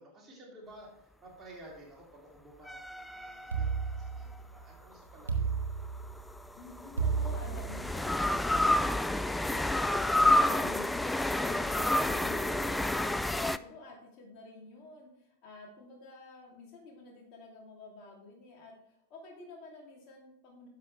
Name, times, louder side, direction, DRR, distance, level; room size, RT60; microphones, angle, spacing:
voice 1, 0.0-5.7, right 1 dB, 15° right, -3 dB, 2.8 m, -53 dB
sound 1, 2.7-4.2 6.0-13.6, left 1 dB, 5° left, 0.3 m, -29 dB
sound 2, 3.5-4.6 5.3-6.3 7.0-8.1, right 6 dB, 70° right, 1.3 m, -32 dB
voice 2, 6.5-9.1 9.5-20.7, left 2 dB, 40° left, -2 dB, 2.7 m, -50 dB
10.5 x 6.7 x 3.4 m, 0.77 s
figure-of-eight pair, 90°, 0 cm